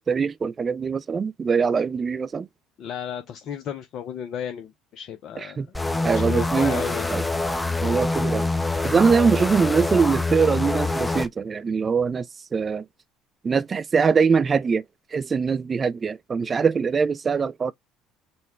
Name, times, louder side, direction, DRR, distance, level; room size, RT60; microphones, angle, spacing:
voice 1, 0.0-2.5 5.4-5.7 6.0-6.8 7.1-7.2 7.8-8.4 8.8-12.3 12.5-12.8 13.4-14.8 15.1-17.7, right 5 dB, 35° right, 0.4 m, -22 dB
voice 2, 2.8-5.7 6.1-7.1, left 9 dB, 55° left, 0.6 m, -34 dB
sound 1, 5.7-11.3, left 2 dB, 10° left, 0.6 m, -25 dB
5.4 x 2.2 x 3.2 m
hypercardioid pair, 65°, 0 cm